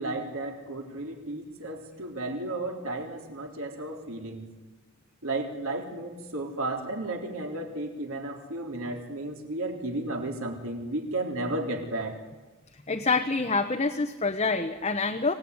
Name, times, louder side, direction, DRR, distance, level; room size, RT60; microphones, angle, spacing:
voice 1, 0.0-4.5 5.2-12.1, right 2 dB, 65° right, 3 dB, 3.7 m, -33 dB
voice 2, 12.9-15.3, left 4 dB, 30° left, 4 dB, 1.1 m, -26 dB
25.5 x 17.5 x 9.8 m, 1.2 s
head